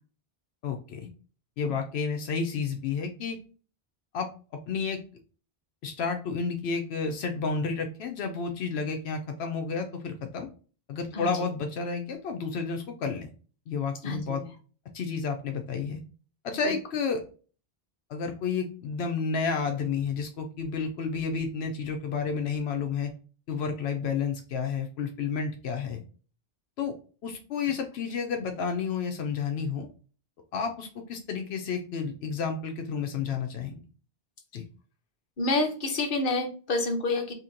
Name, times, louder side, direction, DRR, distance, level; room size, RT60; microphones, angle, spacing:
voice 1, 0.6-1.1 1.6-3.4 4.1-4.3 4.7-5.0 5.8-10.5 10.9-13.3 13.7-14.4 14.9-16.0 16.4-17.2 18.1-23.1 23.5-26.0 26.8-27.0 27.2-29.9 30.5-33.7 34.5-34.6, left 5 dB, 85° left, 5 dB, 0.8 m, -31 dB
voice 2, 14.0-14.5 35.4-37.3, left 2 dB, 55° left, 3 dB, 1.0 m, -28 dB
2.9 x 2.8 x 3.7 m, 0.37 s
omnidirectional pair, 1.0 m